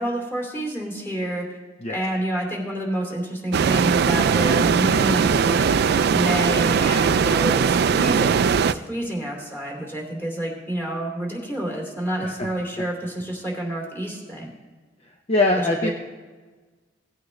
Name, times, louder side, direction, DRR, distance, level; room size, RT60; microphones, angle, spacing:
voice 1, 0.0-1.5 1.9-14.5 15.6-15.9, right 1 dB, 10° left, 0 dB, 2.6 m, -28 dB
sound 1, 3.5-8.7, right 6 dB, 60° right, 0.3 m, -20 dB
voice 2, 12.2-12.5 15.3-15.9, left 2 dB, 35° left, 2 dB, 0.7 m, -22 dB
17.5 x 8.8 x 3.2 m, 1.3 s
head